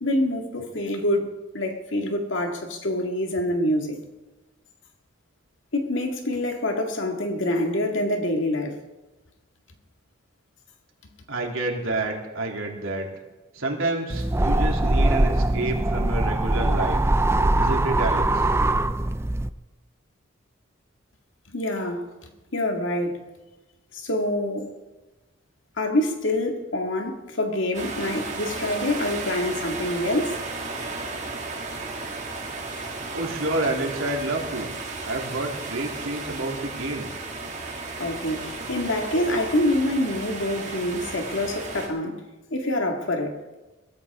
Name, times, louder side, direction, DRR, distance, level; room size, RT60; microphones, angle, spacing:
voice 1, 0.0-4.0 5.7-8.8 21.5-23.2 23.9-24.8 25.8-30.4 38.0-43.4, left 1 dB, 70° left, 1.9 m, -26 dB
voice 2, 11.3-13.1 13.5-17.0 17.5-18.5 33.1-34.7 35.0-37.1, right 2 dB, 85° right, 2.9 m, -29 dB
sound 1, 14.1-19.5, right 1 dB, 10° right, 0.4 m, -22 dB
sound 2, 27.7-41.9, right 3 dB, 35° right, 2.3 m, -34 dB
22.5 x 13.5 x 3.6 m
head